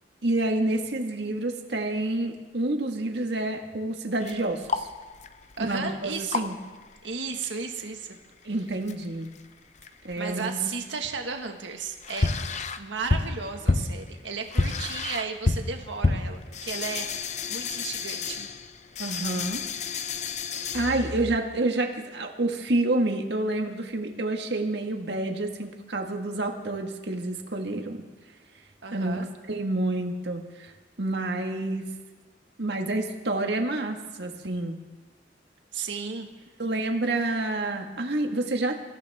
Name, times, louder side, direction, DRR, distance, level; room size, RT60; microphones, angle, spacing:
voice 1, 0.2-4.9 5.6-6.5 8.4-9.3 10.0-10.7 19.0-19.6 20.7-28.0 28.9-30.7 31.0-31.9 32.6-34.8 36.6-38.7, right 2 dB, 65° right, 3 dB, 1.8 m, -28 dB
sound 1, 4.2-7.1 7.4-7.5 7.8-7.9 8.7-9.5 9.8-10.5 10.8-21.4, left 3 dB, 40° left, 0.7 m, -30 dB
voice 2, 5.6-6.5 7.0-8.2 10.2-12.3 12.8-18.5 28.8-29.3 35.7-36.3, right 5 dB, 85° right, 3 dB, 1.8 m, -34 dB
26.0 x 15.0 x 3.6 m, 1.3 s
head